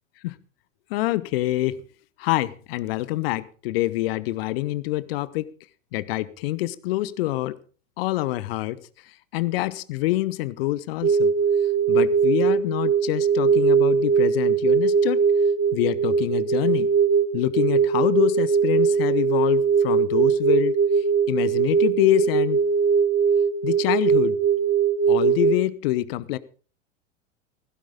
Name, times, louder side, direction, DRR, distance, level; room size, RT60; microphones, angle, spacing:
voice 1, 0.9-1.8 2.2-5.5 5.9-7.6 8.0-8.8 9.3-11.3 11.9-15.2 15.7-16.9 17.3-20.8 21.3-22.6 23.6-24.4 25.1-26.4, left 16 dB, 50° left, 18 dB, 1.1 m, -25 dB
sound 1, 11.0-25.6, right 6 dB, 35° right, 3.3 m, -20 dB
16.5 x 15.5 x 3.8 m, 0.39 s
figure-of-eight pair, 90°, 38 cm